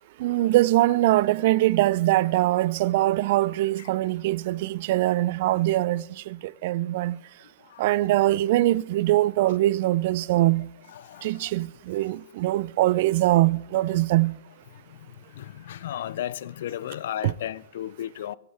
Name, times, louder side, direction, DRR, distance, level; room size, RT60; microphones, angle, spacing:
voice 1, 0.2-7.2 7.8-10.7 11.2-14.4 17.2-17.3, right 16 dB, 55° right, 0.3 m, -22 dB
voice 2, 10.9-11.5 15.4-18.4, left 11 dB, 65° left, 0.4 m, -34 dB
19.0 x 7.7 x 3.4 m
hypercardioid pair, 130°, 0 cm